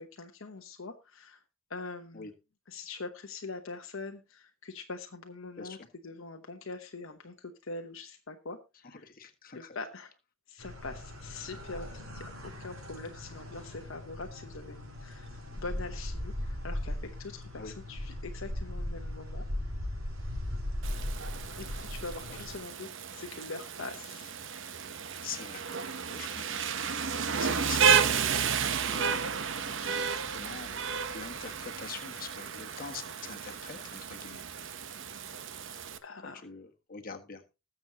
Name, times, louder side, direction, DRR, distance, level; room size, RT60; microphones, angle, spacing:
voice 1, 0.0-1.4 1.7-2.3 2.7-5.8 6.0-9.0 9.5-10.1 10.5-19.5 21.6-24.3 35.2-35.4 36.0-36.4, left 3 dB, 65° left, 4 dB, 1.0 m, -43 dB
voice 2, 5.6-5.9 8.8-9.8 17.6-17.7 22.3-22.4 25.2-25.6 26.1-26.6 27.4-28.1 28.8-29.3 30.3-34.4 36.2-37.4, left 5 dB, 45° left, 3 dB, 1.6 m, -44 dB
sound 1, 10.6-22.6, left 1 dB, 85° right, 3.8 m, -38 dB
Rain, 20.8-36.0, right 6 dB, 60° right, 0.9 m, -32 dB
20.0 x 7.1 x 2.8 m, 0.28 s
head